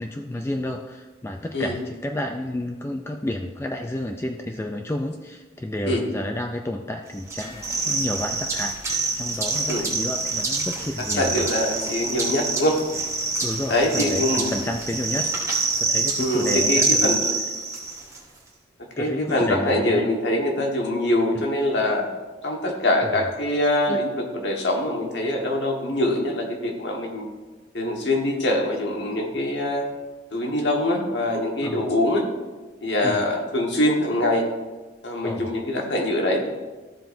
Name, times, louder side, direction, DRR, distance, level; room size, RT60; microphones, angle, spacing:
voice 1, 0.0-11.5 11.7-11.8 13.4-15.3 15.8-17.3 19.0-20.1 21.3-21.4 23.0-23.3 23.9-24.0 31.6-32.0 33.0-33.2 35.2-35.5, left 1 dB, 15° left, 3 dB, 0.4 m, -31 dB
sound 1, 7.3-18.2, right 3 dB, 15° right, 1.2 m, -26 dB
voice 2, 11.2-12.8 13.7-14.5 16.2-17.3 19.0-22.1 22.4-27.3 27.7-29.8 30.3-32.2 32.8-34.5 35.0-36.4, left 1 dB, 65° left, 1 dB, 1.4 m, -23 dB
13.5 x 7.5 x 2.6 m, 1.3 s
head